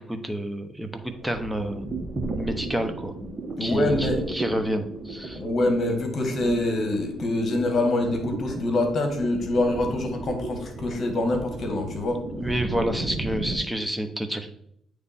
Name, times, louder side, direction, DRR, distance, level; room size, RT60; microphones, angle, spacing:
voice 1, 0.0-1.8 2.3-3.1 3.6-5.4 12.3-14.5, right 1 dB, 5° right, 6 dB, 0.9 m, -29 dB
sound 1, 0.9-13.6, right 2 dB, 25° right, 1.2 m, -35 dB
voice 2, 3.6-4.2 5.4-12.2, left 2 dB, 50° left, 4 dB, 1.6 m, -25 dB
8.6 x 3.3 x 4.2 m, 0.71 s
cardioid pair, 90°, 0 cm